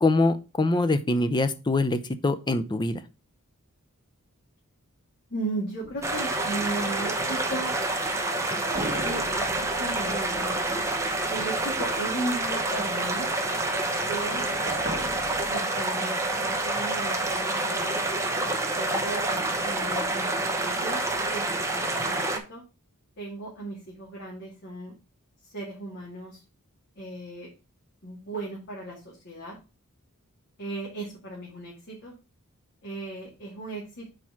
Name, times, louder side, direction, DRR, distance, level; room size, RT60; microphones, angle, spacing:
voice 1, 0.0-3.0, left 2 dB, 20° left, 10 dB, 0.5 m, -24 dB
voice 2, 5.3-7.7 8.7-10.7 11.3-13.3 14.1-14.4 15.5-18.0 18.8-21.0 21.3-22.6 23.2-24.9 25.4-26.4 27.0-27.5 28.0-29.6 30.6-32.2 32.8-34.1, right 2 dB, 50° left, -4 dB, 2.0 m, -36 dB
sound 1, 5.8-7.5 8.7-12.9 14.0-15.5, right 1 dB, 45° right, 1.4 m, -40 dB
sound 2, 6.0-22.4, right 2 dB, 15° right, 0.8 m, -28 dB
4.7 x 4.4 x 5.8 m, 0.30 s
head